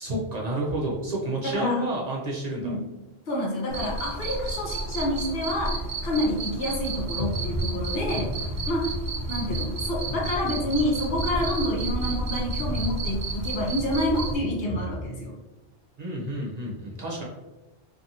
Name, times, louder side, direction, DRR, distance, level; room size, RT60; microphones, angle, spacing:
voice 1, 0.0-2.7 16.0-17.2, right 1 dB, 50° right, -3 dB, 0.5 m, -30 dB
voice 2, 1.4-1.9 2.6-2.9 3.3-8.4 8.7-8.9 9.3-15.3, left 1 dB, 65° left, -2 dB, 1.0 m, -28 dB
Cricket, 3.7-14.4, right 2 dB, 75° right, 0.8 m, -32 dB
sound 1, 7.0-15.0, left 1 dB, 15° left, 0.8 m, -35 dB
2.7 x 2.5 x 2.7 m, 1.1 s
omnidirectional pair, 1.1 m